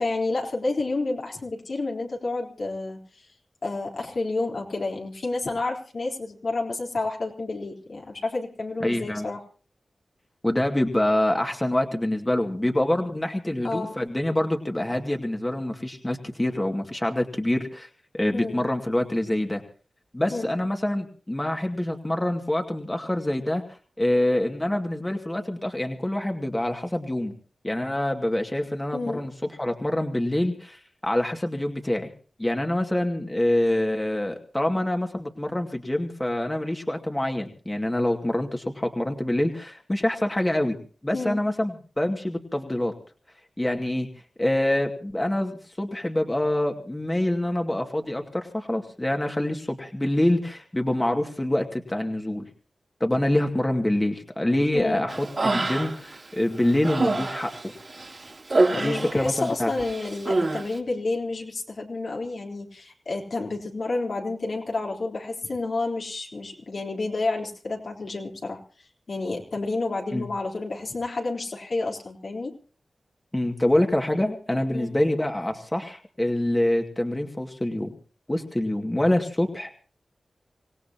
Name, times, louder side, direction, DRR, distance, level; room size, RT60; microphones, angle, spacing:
voice 1, 0.0-3.3 3.6-9.4 13.6-13.9 18.3-18.6 20.3-20.5 28.9-29.2 41.1-41.4 54.7-55.0 58.7-68.6 69.1-72.5 74.7-74.9, left 3 dB, 70° left, -1 dB, 3.9 m, -30 dB
voice 2, 8.8-9.3 10.4-17.9 18.1-19.6 20.1-23.6 24.0-27.3 27.6-29.3 29.6-32.1 32.4-40.8 41.0-42.9 43.6-44.1 44.4-52.5 53.0-57.7 58.7-59.7 70.1-70.3 73.3-77.9 78.3-79.7, left 1 dB, 20° left, 3 dB, 2.3 m, -26 dB
Human voice, 55.1-56.2 56.5-59.5 59.8-60.6, right 2 dB, 50° right, 3.4 m, -26 dB
26.0 x 17.0 x 3.0 m, 0.39 s
cardioid pair, 40°, 0 cm